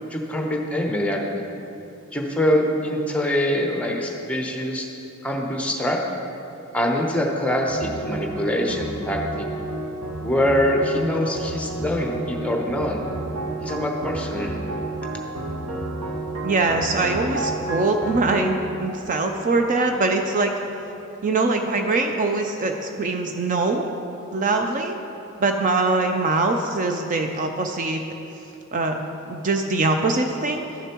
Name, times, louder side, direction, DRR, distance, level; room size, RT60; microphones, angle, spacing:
voice 1, 0.1-1.4 2.1-4.9 5.2-6.0 6.7-9.4 10.2-13.0 13.6-14.6, left 1 dB, 5° left, 1 dB, 0.8 m, -24 dB
sound 1, 7.7-20.2, right 2 dB, 80° right, 0.9 m, -31 dB
voice 2, 16.4-20.5 21.2-23.8 24.3-24.9 25.4-28.0 28.7-30.6, right 3 dB, 40° right, 4 dB, 0.4 m, -23 dB
12.5 x 6.8 x 3.0 m, 2.8 s
head